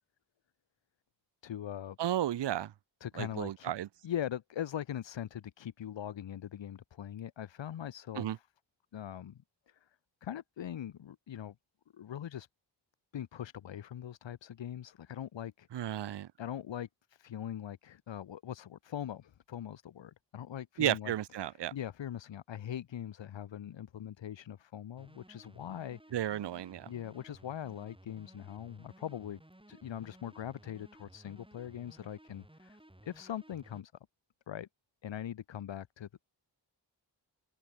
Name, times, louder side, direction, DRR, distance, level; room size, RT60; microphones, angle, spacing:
voice 1, 1.4-2.0 3.0-3.7 4.0-8.4 8.9-9.9 10.2-11.5 11.9-12.5 13.1-21.1 21.4-26.0 26.9-29.4 29.7-33.9 34.5-34.7 35.0-36.2, left 10 dB, 85° left, 0.8 m, -41 dB
voice 2, 2.0-2.7 3.2-3.9 8.2-8.4 15.7-16.3 20.8-21.7 26.1-26.9, right 12 dB, 70° right, 0.6 m, -33 dB
sound 1, 25.0-33.8, right 1 dB, 10° right, 7.2 m, -58 dB
open air
wide cardioid pair, 70°, 44 cm